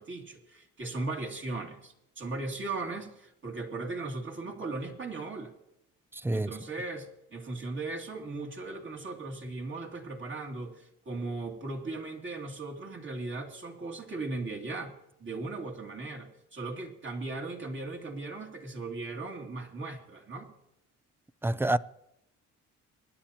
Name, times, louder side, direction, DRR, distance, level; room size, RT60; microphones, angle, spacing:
voice 1, 0.0-5.5 6.3-14.9 15.2-20.5, right 3 dB, 40° right, 2.6 m, -38 dB
voice 2, 6.1-6.5 21.4-21.8, right 1 dB, 10° right, 0.4 m, -27 dB
23.0 x 10.5 x 2.9 m
cardioid pair, 90°, 30 cm